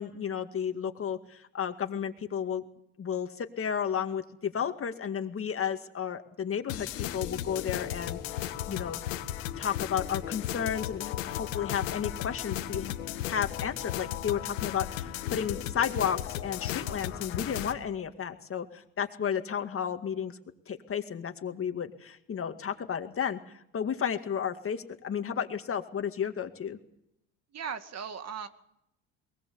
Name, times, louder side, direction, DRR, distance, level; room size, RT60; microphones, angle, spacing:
voice 1, 0.0-2.6 3.0-8.4 8.7-9.0 9.6-12.9 13.3-20.4 20.7-26.8, left 8 dB, 35° left, 7 dB, 2.1 m, -33 dB
sound 1, 6.7-17.7, left 12 dB, 85° left, 1.9 m, -35 dB
voice 2, 27.5-28.5, right 7 dB, 45° right, 9 dB, 2.2 m, -37 dB
22.5 x 19.5 x 7.1 m, 0.77 s
supercardioid pair, 85°, 37 cm